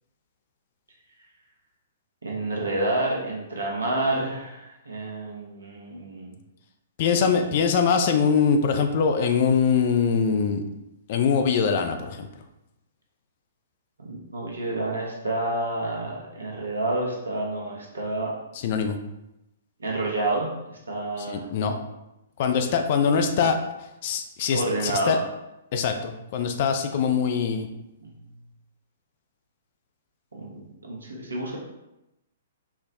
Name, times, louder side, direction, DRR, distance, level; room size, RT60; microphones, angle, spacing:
voice 1, 2.2-6.4 14.0-18.3 19.8-20.5 20.9-21.5 24.5-25.2 28.0-28.1 30.3-31.6, right 2 dB, 75° right, -2 dB, 0.9 m, -29 dB
voice 2, 7.0-10.6 11.1-12.3 18.6-19.0 21.2-21.7 22.4-23.6 24.0-25.2 25.7-27.7, left 6 dB, 45° left, 6 dB, 0.3 m, -23 dB
4.0 x 2.0 x 2.7 m, 0.91 s
figure-of-eight pair, 115°, 0 cm